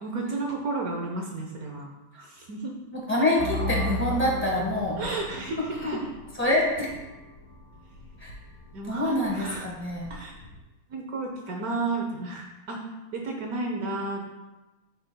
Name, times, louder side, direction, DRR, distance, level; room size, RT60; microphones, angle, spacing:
voice 1, 0.0-1.9 2.5-2.7 5.0-5.6 8.7-9.6 10.1-10.3 10.9-12.8 13.1-14.2, right 3 dB, 70° right, 1 dB, 0.8 m, -32 dB
voice 2, 2.9-5.1 5.6-6.0 6.3-6.9 8.2-8.3 8.8-10.1, left 1 dB, 5° left, -4 dB, 1.0 m, -26 dB
sound 1, 3.4-10.6, left 1 dB, 70° left, 1.6 m, -36 dB
8.2 x 5.8 x 2.2 m, 1.1 s
omnidirectional pair, 2.4 m